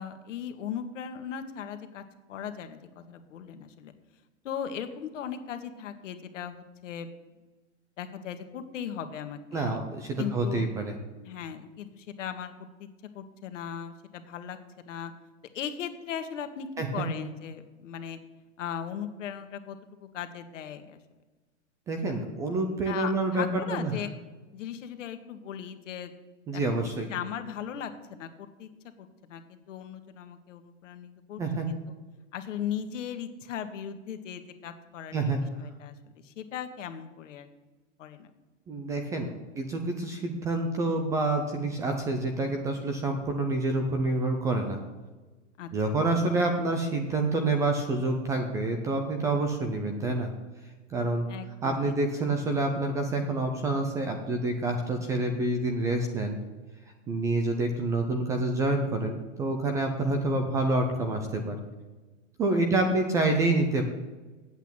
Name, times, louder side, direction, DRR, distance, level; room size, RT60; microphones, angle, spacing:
voice 1, 0.0-2.0 2.3-3.9 4.4-7.1 8.0-9.8 10.2-10.7 11.2-12.5 12.8-12.9 13.1-14.6 14.8-15.1 15.5-18.2 18.6-21.0 22.8-24.1 24.5-26.1 26.5-28.7 29.0-31.4 31.7-31.8 32.3-35.2 35.6-35.9 36.2-37.5 38.0-38.3 45.6-45.7 51.3-51.7 52.1-52.5 62.5-62.6 62.9-63.1, left 8 dB, 75° left, 8 dB, 1.5 m, -38 dB
voice 2, 9.5-10.9 16.8-17.1 21.9-23.5 23.7-23.9 26.5-27.1 31.4-31.7 35.1-35.4 38.7-44.8 45.7-50.3 50.9-51.3 51.6-56.4 57.1-61.6 62.4-63.8, right 2 dB, 10° right, 5 dB, 0.3 m, -27 dB
8.2 x 8.1 x 8.8 m, 1.2 s
supercardioid pair, 150°, 37 cm